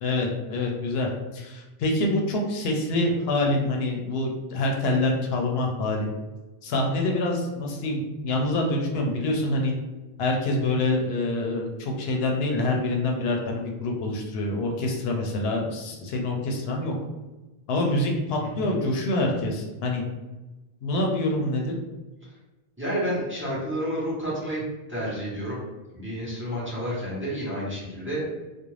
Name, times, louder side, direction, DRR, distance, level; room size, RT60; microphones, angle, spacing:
voice 1, 0.0-6.1 6.6-9.7 10.2-16.9 17.7-20.0 20.8-21.7, left 2 dB, 80° left, 1 dB, 0.8 m, -26 dB
voice 2, 18.4-18.9 22.8-25.6 25.9-28.2, equal, 15° right, -7 dB, 0.7 m, -30 dB
2.4 x 2.1 x 3.0 m, 1.1 s
omnidirectional pair, 1.0 m